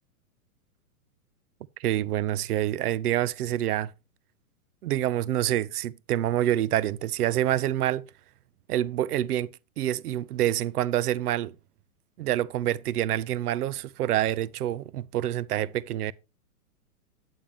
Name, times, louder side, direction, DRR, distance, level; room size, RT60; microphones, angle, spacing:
voice 1, 1.8-3.9 4.8-8.0 8.7-9.5 9.8-11.5 12.2-16.1, right 12 dB, 80° right, 0.6 m, -27 dB
9.0 x 8.8 x 3.5 m
hypercardioid pair, 150°, 44 cm